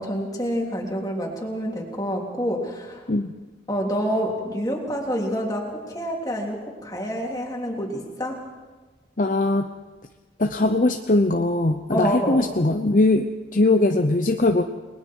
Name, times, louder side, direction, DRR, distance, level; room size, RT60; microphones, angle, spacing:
voice 1, 0.0-3.0 3.7-8.4 11.9-12.4, equal, 20° left, -1 dB, 3.3 m, -27 dB
voice 2, 9.2-9.7 10.4-14.6, left 2 dB, 45° left, 6 dB, 0.8 m, -20 dB
29.5 x 20.5 x 4.7 m, 1.3 s
head